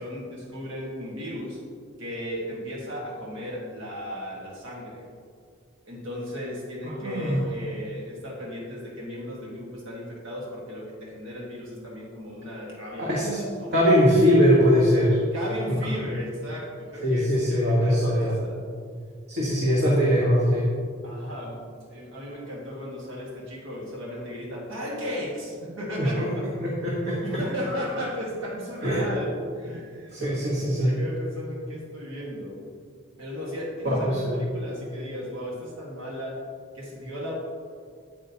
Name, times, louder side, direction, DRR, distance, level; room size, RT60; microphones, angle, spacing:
voice 1, 0.0-1.6 2.0-5.0 5.9-13.8 15.3-18.6 19.4-20.0 21.0-21.6 21.9-26.5 27.2-30.4 30.8-32.6 33.2-36.4 36.7-37.3, equal, 65° right, -3 dB, 1.5 m, -35 dB
voice 2, 7.0-7.4 13.0-13.4 13.7-15.2 15.7-15.8 17.0-18.3 19.3-20.7 26.0-26.3 26.6-27.2 28.8-29.0 30.1-31.0 33.9-34.4, equal, 50° right, -5 dB, 1.2 m, -21 dB
8.4 x 8.1 x 2.8 m, 2.1 s
head